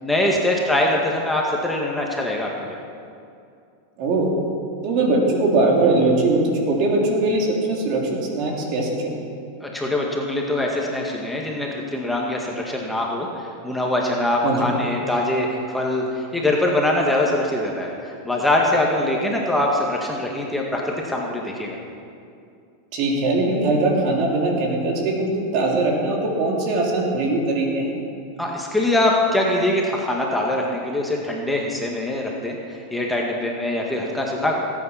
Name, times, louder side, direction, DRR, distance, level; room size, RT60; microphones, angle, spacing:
voice 1, 0.0-2.8 9.6-21.8 28.4-34.6, left 1 dB, 5° left, -1 dB, 1.8 m, -23 dB
voice 2, 4.0-4.3 4.8-9.2 14.4-14.7 22.9-27.9, right 2 dB, 55° right, -1 dB, 3.4 m, -21 dB
18.5 x 8.9 x 5.8 m, 2.4 s
hypercardioid pair, 120°, 0 cm